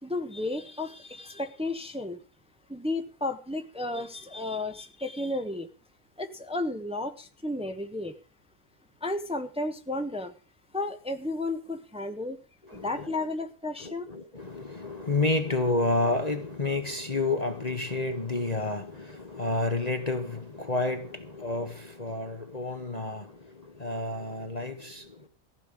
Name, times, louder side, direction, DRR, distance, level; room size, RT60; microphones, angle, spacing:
voice 1, 0.0-2.2 2.7-5.7 6.2-8.1 9.0-10.3 10.7-12.4 12.7-14.1, left 2 dB, 5° right, 1.2 m, -33 dB
voice 2, 12.6-13.1 13.8-25.3, left 2 dB, 30° left, 1.2 m, -30 dB
15.5 x 5.6 x 9.8 m
omnidirectional pair, 1.5 m